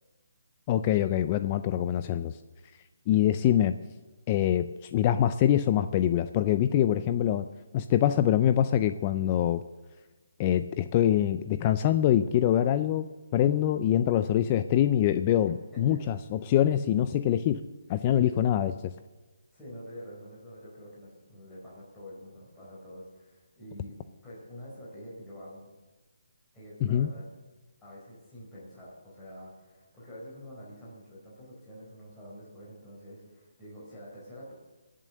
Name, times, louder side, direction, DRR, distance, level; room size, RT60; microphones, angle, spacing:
voice 1, 0.7-2.3 3.1-3.7 4.3-7.5 7.7-9.6 10.4-13.1 13.3-17.6 17.9-18.7 26.9-27.1, left 11 dB, 25° left, 11 dB, 0.4 m, -24 dB
voice 2, 18.0-18.5 19.5-25.6 26.5-27.2 27.8-34.5, equal, 5° left, -8 dB, 4.2 m, -47 dB
21.5 x 7.5 x 6.6 m, 1.2 s
hypercardioid pair, 165°, 0 cm